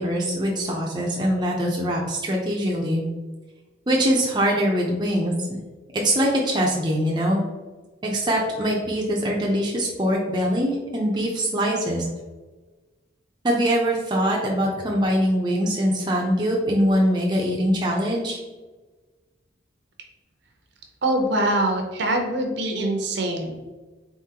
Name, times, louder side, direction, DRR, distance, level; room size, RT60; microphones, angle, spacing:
voice 1, 0.0-3.0 3.9-5.3 5.9-7.4 8.0-12.0 13.4-18.4, equal, 20° right, -3 dB, 0.5 m, -23 dB
voice 2, 21.0-23.6, right 1 dB, 60° right, 3 dB, 0.7 m, -23 dB
3.8 x 3.7 x 2.8 m, 1.2 s
head